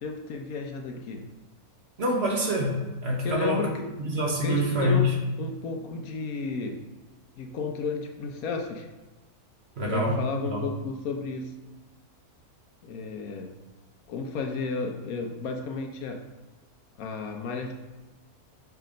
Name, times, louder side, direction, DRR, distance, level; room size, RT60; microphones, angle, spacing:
voice 1, 0.0-1.2 3.2-3.9 4.4-5.1 5.4-6.8 7.4-8.9 9.8-11.5 12.8-13.5 14.1-16.2 17.0-17.7, left 4 dB, 70° left, 4 dB, 1.1 m, -32 dB
voice 2, 2.0-3.6 4.0-5.1 9.8-10.2 10.5-10.7, equal, 45° right, -1 dB, 1.2 m, -26 dB
5.8 x 3.4 x 5.1 m, 1.2 s
omnidirectional pair, 1.6 m